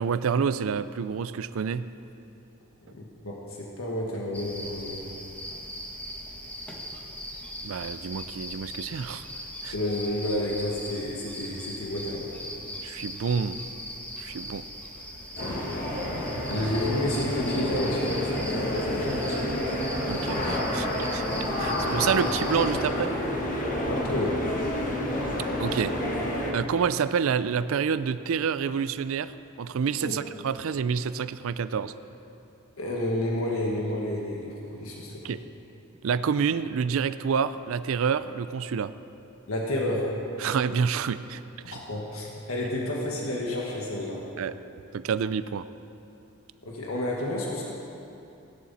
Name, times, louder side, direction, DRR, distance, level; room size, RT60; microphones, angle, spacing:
voice 1, 0.0-1.9 7.6-9.3 9.6-9.7 12.8-13.6 14.2-14.7 16.5-16.7 19.5-19.6 20.0-21.3 21.6-23.1 25.6-25.9 26.5-29.3 29.6-31.9 35.2-35.4 36.0-38.9 40.4-41.7 44.4-44.5 44.9-45.7, right 6 dB, 70° right, 14 dB, 0.4 m, -28 dB
voice 2, 2.9-5.1 9.7-12.4 15.4-15.8 16.5-19.5 21.8-21.9 23.8-24.5 30.0-30.2 32.8-35.3 39.5-40.1 41.6-44.3 46.6-47.7, left 1 dB, 70° left, -2 dB, 1.6 m, -31 dB
sound 1, 4.3-22.7, equal, 5° left, 1.3 m, -40 dB
sound 2, 15.4-26.5, left 1 dB, 40° left, 1.6 m, -29 dB
16.5 x 11.0 x 4.2 m, 2.7 s
head